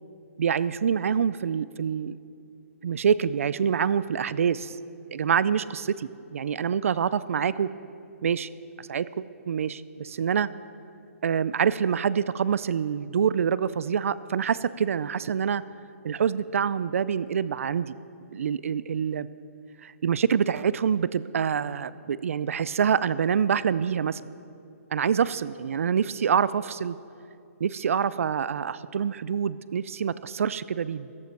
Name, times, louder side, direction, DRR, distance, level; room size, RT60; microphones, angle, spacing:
voice 1, 0.4-2.2 2.8-4.8 5.1-7.7 8.2-8.5 8.8-10.5 11.2-15.6 16.0-17.9 18.3-19.3 19.8-24.2 24.9-27.0 27.6-31.1, right 7 dB, 65° right, 17 dB, 0.4 m, -26 dB
14.5 x 12.0 x 4.6 m, 2.5 s
hypercardioid pair, 175°, 8 cm